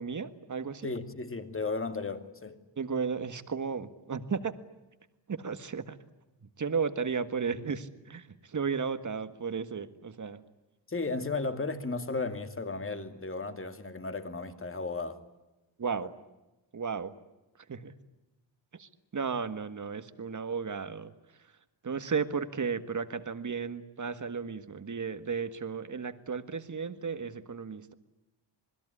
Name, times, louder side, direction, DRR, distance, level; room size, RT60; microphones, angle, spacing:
voice 1, 0.0-0.9 2.8-4.5 5.3-6.0 6.4-10.4 15.8-16.1 16.7-17.2 17.7-17.9 18.7-21.1 21.4-21.5 21.8-27.9, right 5 dB, 40° right, 11 dB, 1.7 m, -34 dB
voice 2, 0.8-2.6 10.9-15.2 15.9-16.1, left 3 dB, 30° left, 8 dB, 2.4 m, -35 dB
27.0 x 21.0 x 9.9 m, 1.0 s
wide cardioid pair, 110°, 45 cm